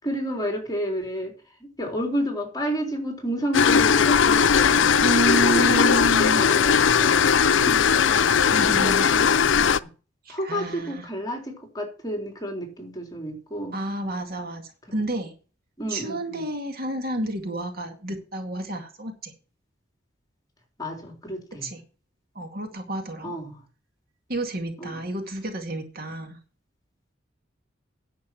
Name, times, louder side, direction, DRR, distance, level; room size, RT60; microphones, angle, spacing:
voice 1, 0.0-1.3 1.6-9.9 10.3-13.8 15.8-16.5 20.8-21.7 23.2-23.6 24.8-25.1, equal, 20° left, 2 dB, 3.9 m, -31 dB
sound 1, 3.5-9.8, left 7 dB, 85° left, 0.5 m, -19 dB
voice 2, 5.0-6.4 8.5-9.1 10.3-11.1 13.7-15.3 15.9-19.3 21.6-21.8 22.4-23.3 24.3-26.4, right 1 dB, 55° right, 5 dB, 2.2 m, -30 dB
10.5 x 7.6 x 6.0 m, 0.36 s
head